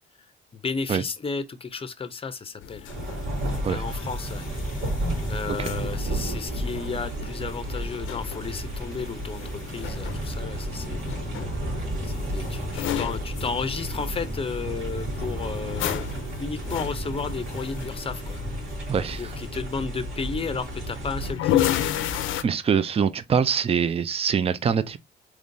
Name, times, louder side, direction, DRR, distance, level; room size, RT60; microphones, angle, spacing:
voice 1, 0.5-2.9 3.6-4.5 5.3-11.3 12.0-16.1 16.4-18.4 19.2-22.1, left 5 dB, 30° left, 0.6 m, -33 dB
sound 1, 2.6-22.4, left 11 dB, 80° left, 0.5 m, -34 dB
sound 2, 2.9-21.3, right 1 dB, 85° right, 1.8 m, -32 dB
sound 3, 6.0-22.4, right 1 dB, 65° right, 1.5 m, -49 dB
voice 2, 18.9-19.3 22.4-25.0, right 7 dB, 30° right, 0.4 m, -24 dB
3.7 x 3.1 x 2.6 m
cardioid pair, 90°, 20 cm